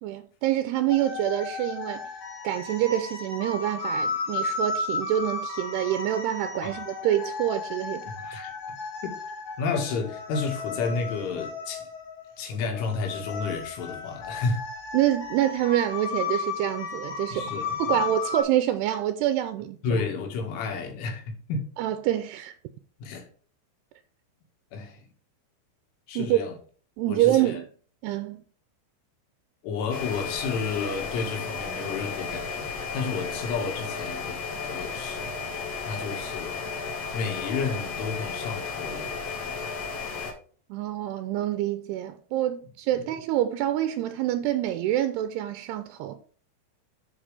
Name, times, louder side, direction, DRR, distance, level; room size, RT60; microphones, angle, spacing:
voice 1, 0.0-2.1 2.4-8.1 14.9-17.5 17.8-20.0 21.8-22.5 26.2-26.4 27.0-27.7 28.0-28.4 40.7-46.2, right 13 dB, 85° right, 2.3 m, -26 dB
sound 1, 0.9-18.4, left 4 dB, 70° left, 4.5 m, -34 dB
voice 2, 8.2-8.5 9.6-11.9 12.4-14.6 17.3-17.8 19.8-21.7 23.0-23.3 24.7-25.0 26.1-26.6 27.1-27.6 29.6-35.3 35.8-36.6 37.1-39.1 42.9-43.0, left 4 dB, 85° left, 4.3 m, -31 dB
sound 2, 29.9-40.3, left 5 dB, 55° left, 1.9 m, -34 dB
9.4 x 4.4 x 4.9 m
omnidirectional pair, 5.4 m